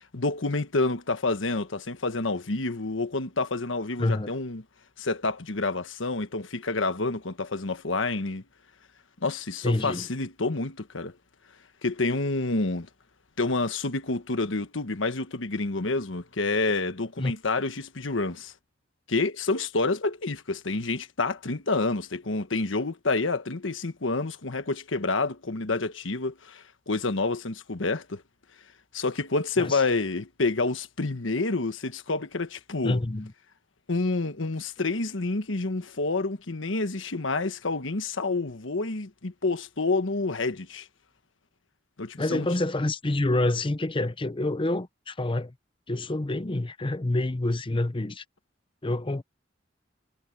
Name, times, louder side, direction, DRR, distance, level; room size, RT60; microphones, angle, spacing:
voice 1, 0.1-4.6 5.0-8.4 9.2-11.1 11.8-12.9 13.4-18.5 19.1-28.2 28.9-33.0 33.9-40.9 42.0-42.5, left 3 dB, 85° left, 1.3 m, -28 dB
voice 2, 4.0-4.3 9.6-10.1 17.2-17.3 29.6-29.8 32.8-33.3 42.2-45.5 45.9-48.2 48.8-49.2, left 2 dB, 25° left, 0.7 m, -27 dB
head